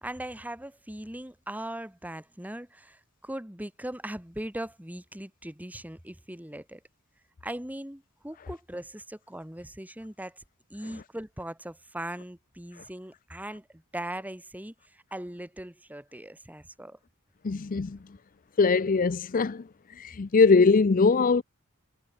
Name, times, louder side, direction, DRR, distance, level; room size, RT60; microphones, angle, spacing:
voice 1, 0.0-6.8 7.4-10.4 10.7-17.0, right 1 dB, 5° right, 2.1 m, -39 dB
voice 2, 17.4-18.0 18.6-19.6 20.0-21.4, left 4 dB, 40° left, 0.5 m, -21 dB
head